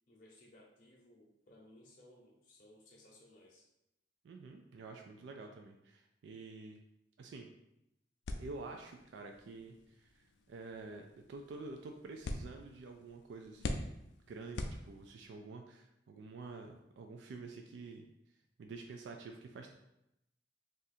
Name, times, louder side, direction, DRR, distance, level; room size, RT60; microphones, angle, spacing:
voice 1, 0.1-3.7, left 1 dB, 50° left, -4 dB, 0.7 m, -61 dB
voice 2, 4.2-6.8 7.2-7.5 8.4-14.0 14.3-18.1 18.6-19.7, right 3 dB, 85° right, 3 dB, 0.3 m, -49 dB
sound 1, 8.2-15.4, left 2 dB, 80° left, 0.4 m, -45 dB
2.7 x 2.5 x 4.0 m, 0.84 s
head